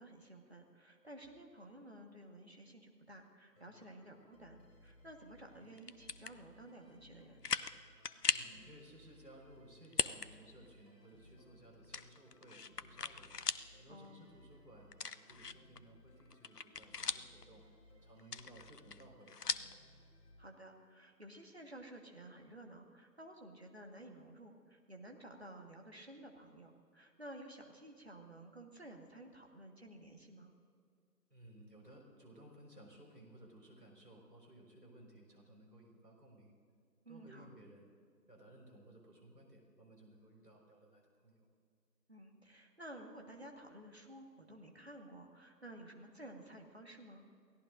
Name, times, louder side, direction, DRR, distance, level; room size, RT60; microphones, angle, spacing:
voice 1, 0.0-4.6 4.8-7.4 13.9-14.3 20.4-30.5 37.0-37.5 42.1-47.2, right 1 dB, 40° right, 2 dB, 1.6 m, -53 dB
sound 1, 3.5-21.1, left 1 dB, 15° left, 5.1 m, -63 dB
sound 2, 5.8-6.3 6.9-7.0 7.4-7.8 8.0-8.5 9.8-10.3 10.7-10.8 11.9-13.7 14.0-14.1 14.9-15.8 16.2-17.4 18.2-19.7, left 5 dB, 70° left, 0.7 m, -38 dB
voice 2, 8.2-13.4 13.8-17.6 18.0-19.7 31.3-36.5 37.1-37.9 38.3-41.5, right 1 dB, 75° right, 0 dB, 5.2 m, -59 dB
29.0 x 17.0 x 2.6 m, 2.2 s
figure-of-eight pair, 170°, 50 cm